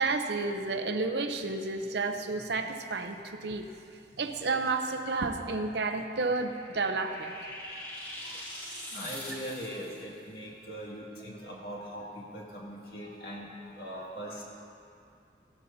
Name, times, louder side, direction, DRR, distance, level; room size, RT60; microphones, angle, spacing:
voice 1, 0.0-3.7 4.2-7.3, right 3 dB, 75° right, 6 dB, 0.7 m, -31 dB
sound 1, 6.1-10.0, left 1 dB, 10° left, 1.5 m, -43 dB
voice 2, 8.9-14.4, equal, 60° left, -4 dB, 2.3 m, -41 dB
16.5 x 12.5 x 2.8 m, 2.5 s
head